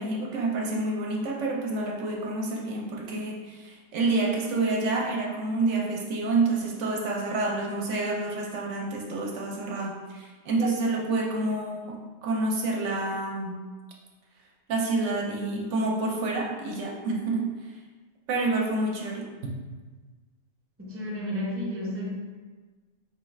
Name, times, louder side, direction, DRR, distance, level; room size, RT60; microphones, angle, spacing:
voice 1, 0.0-12.0 12.2-13.6 14.7-17.5 18.3-19.3, right 2 dB, 70° right, -2 dB, 0.9 m, -28 dB
voice 2, 20.8-22.2, left 1 dB, 15° right, -6 dB, 0.6 m, -32 dB
4.4 x 2.3 x 3.1 m, 1.4 s
omnidirectional pair, 1.3 m